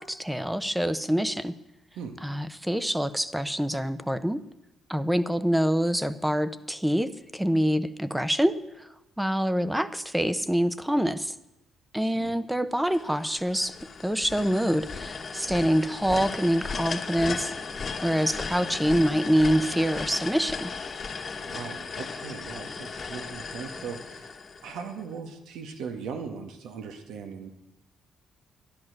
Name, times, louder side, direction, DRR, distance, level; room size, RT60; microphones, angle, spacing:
voice 1, 0.0-1.5 2.2-4.4 4.9-8.9 9.2-11.3 11.9-13.8 14.0-17.5 18.0-20.7, equal, 5° right, 13 dB, 0.7 m, -26 dB
voice 2, 12.0-12.4 21.4-24.3 24.6-27.5, right 6 dB, 85° right, 6 dB, 1.7 m, -39 dB
sound 1, 12.9-25.0, left 4 dB, 40° left, 1.3 m, -36 dB
12.0 x 10.5 x 6.6 m, 0.88 s
cardioid pair, 90°, 0 cm